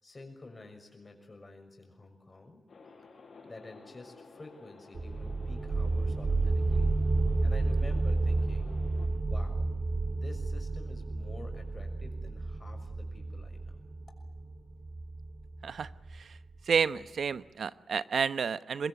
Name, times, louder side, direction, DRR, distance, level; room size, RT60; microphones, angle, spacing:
voice 1, 0.0-2.6 3.4-6.9 7.4-8.8 9.2-9.7 10.1-13.8, left 2 dB, 30° left, 5 dB, 6.3 m, -49 dB
sound 1, 2.7-9.1, left 4 dB, 65° left, 7.2 m, -54 dB
sound 2, 4.9-16.4, right 3 dB, 55° right, 4.1 m, -31 dB
voice 2, 15.6-16.4 16.7-18.9, right 6 dB, 75° right, 15 dB, 0.9 m, -31 dB
25.0 x 21.0 x 9.7 m, 1.1 s
wide cardioid pair, 105°, 0 cm